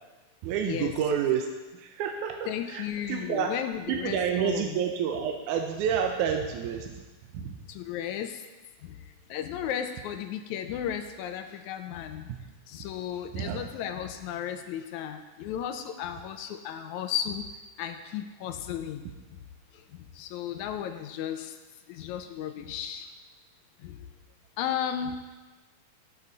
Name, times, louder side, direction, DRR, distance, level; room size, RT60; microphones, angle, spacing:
voice 1, 0.4-1.5 1.8-3.5 3.9-7.0 7.3-7.5 12.3-12.4 13.3-13.6, right 8 dB, 80° right, 3 dB, 2.1 m, -29 dB
voice 2, 2.5-4.8 7.4-8.4 8.8-9.0 9.3-12.3 12.7-17.5 17.8-19.1 19.7-19.8 20.1-21.6 21.9-23.1 23.8-24.1 24.6-25.2, left 9 dB, 80° left, 7 dB, 1.9 m, -34 dB
13.0 x 7.0 x 4.0 m, 1.2 s
omnidirectional pair, 3.6 m